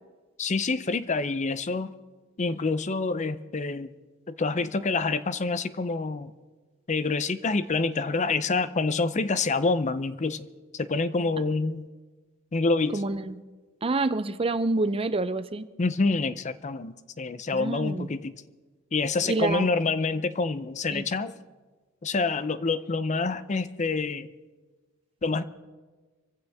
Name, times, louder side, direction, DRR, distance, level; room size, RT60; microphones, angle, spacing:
voice 1, 0.4-1.9 2.4-3.9 4.3-6.3 6.9-10.5 10.7-11.9 12.5-13.0 15.8-18.3 18.9-21.3 22.0-24.3 25.2-25.4, left 3 dB, 35° left, 0.6 m, -27 dB
voice 2, 12.9-13.4 13.8-15.7 17.5-18.1 19.3-19.7 20.9-21.0, right 3 dB, 30° right, 0.5 m, -27 dB
25.0 x 15.5 x 3.5 m
head